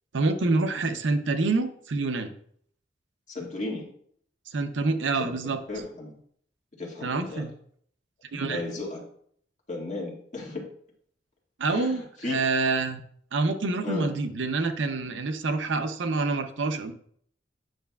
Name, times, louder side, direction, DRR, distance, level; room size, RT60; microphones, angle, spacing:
voice 1, 0.1-2.3 4.5-5.6 7.0-7.5 8.3-8.6 11.6-13.0 13.3-16.9, right 3 dB, 75° right, 8 dB, 0.6 m, -27 dB
voice 2, 3.3-3.8 5.2-6.1 6.8-7.5 8.3-9.0 9.7-10.6 11.7-12.4 13.8-14.1, left 2 dB, 40° left, -3 dB, 1.8 m, -35 dB
9.0 x 5.5 x 2.3 m, 0.62 s
head